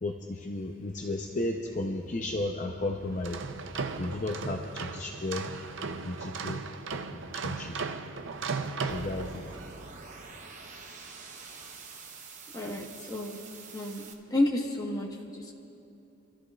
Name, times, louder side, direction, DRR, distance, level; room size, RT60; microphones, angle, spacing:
voice 1, 0.0-3.5 4.0-5.5 5.8-6.6 7.1-7.8 8.5-9.4, left 2 dB, 35° left, 2 dB, 0.6 m, -34 dB
sound 1, 0.5-6.1, equal, 85° left, 2.1 m, -54 dB
sound 2, 3.1-9.8, right 4 dB, 65° right, 0.6 m, -36 dB
sound 3, 8.9-14.1, right 4 dB, 40° right, 0.9 m, -46 dB
voice 2, 12.5-13.4 13.7-15.5, left 1 dB, 20° left, 0 dB, 1.3 m, -31 dB
27.5 x 13.5 x 2.4 m, 2.7 s
head